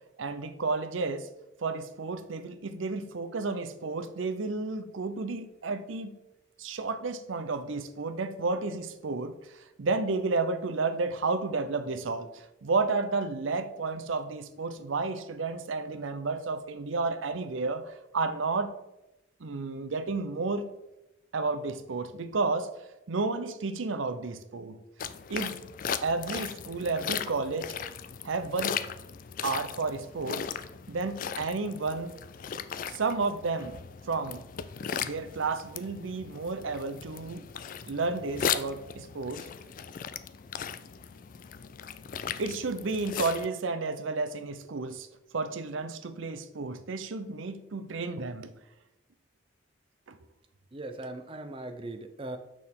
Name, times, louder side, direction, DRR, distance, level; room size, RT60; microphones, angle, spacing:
voice 1, 0.2-1.3 1.6-6.1 6.6-18.7 19.4-20.7 21.3-22.7 23.1-24.8 25.3-25.6 26.0-27.7 28.2-28.8 29.4-30.5 30.9-32.1 32.9-33.8 34.0-34.4 35.0-37.4 37.9-39.5 42.4-45.1 45.3-48.5 50.1-50.2, right 3 dB, 80° right, 10 dB, 0.6 m, -32 dB
sound 1, 25.0-43.5, left 7 dB, 45° left, 0.3 m, -37 dB
voice 2, 50.7-52.4, right 2 dB, 25° right, 7 dB, 0.5 m, -39 dB
6.7 x 6.1 x 3.6 m, 0.96 s
head